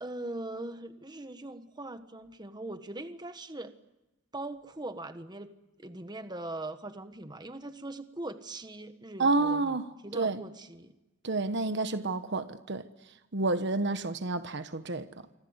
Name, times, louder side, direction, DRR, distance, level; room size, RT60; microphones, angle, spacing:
voice 1, 0.0-3.7 4.3-5.5 5.8-9.7 10.0-10.9, right 2 dB, 20° right, 1.4 m, -41 dB
voice 2, 9.2-10.4 11.2-12.9 13.3-15.1, right 3 dB, 60° right, 1.3 m, -29 dB
27.0 x 24.5 x 8.1 m
head